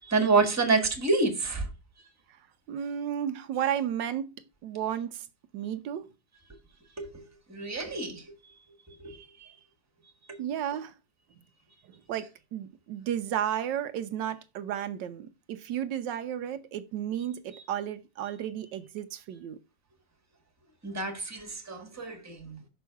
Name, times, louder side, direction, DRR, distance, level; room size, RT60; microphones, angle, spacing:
voice 1, 0.1-1.6 7.0-7.2 7.5-8.2 9.0-9.2 20.8-22.6, right 3 dB, 10° right, 1.3 m, -27 dB
voice 2, 2.7-4.3 4.6-5.3 5.5-6.1 10.4-10.9 11.9-19.6, right 10 dB, 80° right, 1.3 m, -33 dB
6.1 x 5.4 x 4.6 m
omnidirectional pair, 2.0 m